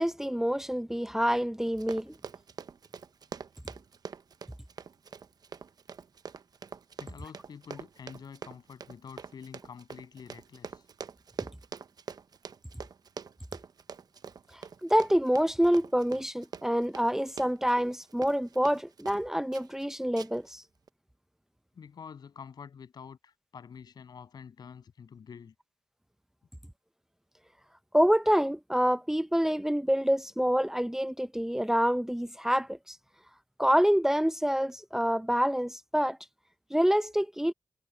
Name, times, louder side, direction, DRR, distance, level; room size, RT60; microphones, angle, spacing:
voice 1, 0.0-2.1 14.8-20.6 27.9-33.0 33.6-36.2 36.7-37.5, equal, 5° right, 0.7 m, -27 dB
Run, 1.7-19.2 19.5-19.8 20.2-20.5 20.9-21.0, right 6 dB, 75° right, 0.7 m, -44 dB
voice 2, 7.0-10.9 21.7-25.5, left 6 dB, 85° left, 7.8 m, -47 dB
cardioid pair, 50°, 7 cm